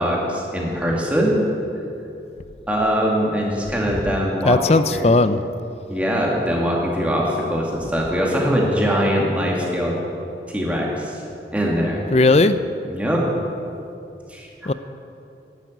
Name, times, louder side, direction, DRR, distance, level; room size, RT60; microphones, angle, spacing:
voice 1, 0.0-1.4 2.7-5.1 5.9-9.9 10.5-11.2 11.5-12.0 12.9-13.3 14.3-14.5, equal, 10° right, -3 dB, 2.2 m, -22 dB
voice 2, 4.4-5.4 12.1-12.6 14.7-14.8, left 2 dB, 35° left, 12 dB, 0.5 m, -16 dB
10.5 x 10.5 x 9.3 m, 2.7 s
head